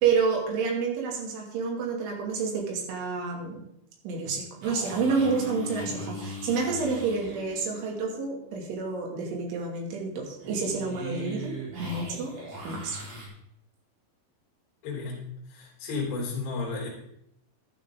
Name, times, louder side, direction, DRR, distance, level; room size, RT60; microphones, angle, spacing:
voice 1, 0.0-3.6 4.0-12.3 12.6-13.0, right 5 dB, 70° right, 0 dB, 4.8 m, -29 dB
sound 1, 4.6-8.0 10.4-13.3, right 2 dB, 50° right, 5.7 m, -40 dB
Bass guitar, 5.2-9.1, left 4 dB, 85° left, 2.1 m, -41 dB
voice 2, 14.8-15.2 15.5-16.9, left 4 dB, 60° left, -4 dB, 5.8 m, -32 dB
13.5 x 11.5 x 3.8 m, 0.76 s
omnidirectional pair, 5.8 m